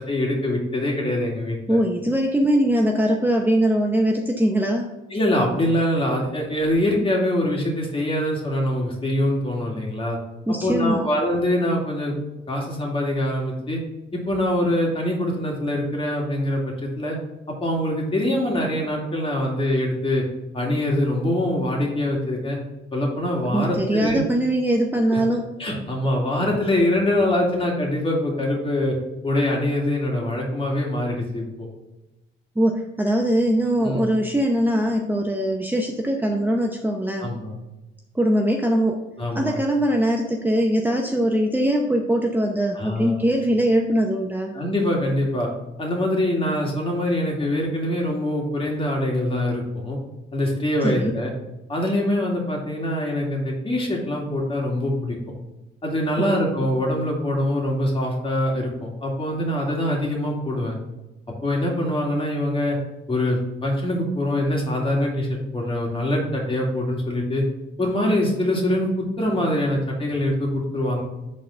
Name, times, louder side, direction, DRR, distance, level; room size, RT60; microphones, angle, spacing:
voice 1, 0.1-1.8 5.1-10.2 10.6-12.1 12.5-13.8 14.1-17.2 17.6-20.2 20.5-22.6 22.9-24.2 25.1-25.2 25.6-29.0 29.2-31.7 33.8-34.1 37.2-37.5 39.2-39.6 42.7-43.2 44.5-45.5 45.8-50.0 50.3-51.3 51.7-55.2 55.8-60.7 61.4-62.8 63.1-67.4 67.8-71.0, left 1 dB, 25° left, -1 dB, 2.5 m, -24 dB
voice 2, 1.7-4.9 10.5-11.1 23.5-25.5 32.6-37.3 38.1-39.0 39.3-44.5 50.8-51.1 56.2-56.4, equal, 10° right, 1 dB, 0.8 m, -21 dB
6.4 x 4.1 x 5.8 m, 1.0 s
cardioid pair, 90°, 20 cm